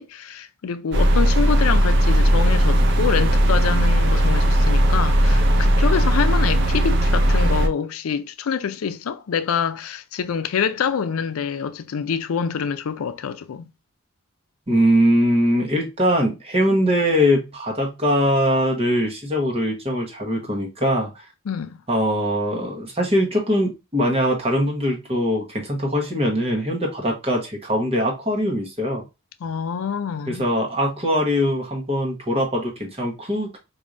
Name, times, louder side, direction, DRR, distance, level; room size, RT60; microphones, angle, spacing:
voice 1, 0.0-13.7 21.5-21.8 29.4-30.5, left 6 dB, 85° left, 0.4 m, -26 dB
sound 1, 0.9-7.7, right 1 dB, 55° right, 0.5 m, -17 dB
voice 2, 14.7-21.1 21.9-29.1 30.3-33.6, equal, 25° right, 1.0 m, -21 dB
4.6 x 2.6 x 2.4 m
head